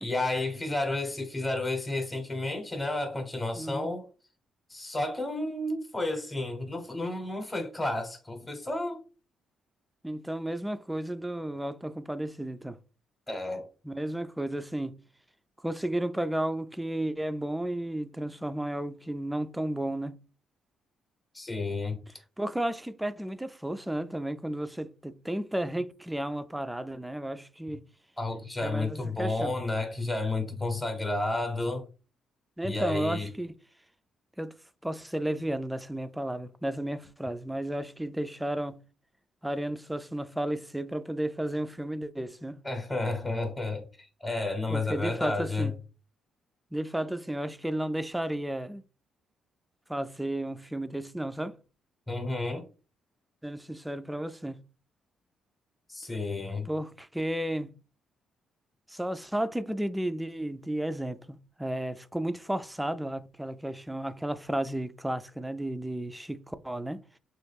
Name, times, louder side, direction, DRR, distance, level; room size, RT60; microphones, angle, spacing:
voice 1, 0.0-4.1 4.7-9.0 13.3-13.7 21.3-22.0 28.2-31.8 32.6-33.3 42.6-43.8 44.2-45.7 52.1-52.6 55.9-56.7, left 2 dB, 15° left, 0.9 m, -31 dB
voice 2, 3.6-3.9 10.0-12.8 13.8-15.0 15.6-20.2 22.4-27.8 28.6-29.5 32.6-33.6 34.4-34.5 34.8-38.8 39.4-42.6 44.7-45.7 46.7-48.8 49.9-51.6 53.4-54.6 56.7-57.8 58.9-67.0, right 1 dB, 5° right, 0.3 m, -33 dB
3.1 x 2.3 x 3.3 m
cardioid pair, 90°, 0 cm